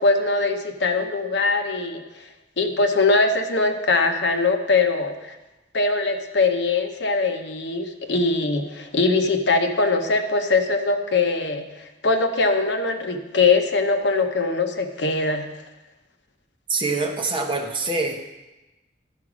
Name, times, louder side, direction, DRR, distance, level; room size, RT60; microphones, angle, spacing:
voice 1, 0.0-2.3 2.6-5.4 5.7-15.5, left 3 dB, 70° left, 6 dB, 0.9 m, -22 dB
voice 2, 16.7-18.2, right 3 dB, 25° right, 3 dB, 1.0 m, -25 dB
12.0 x 4.9 x 6.1 m, 1.0 s
head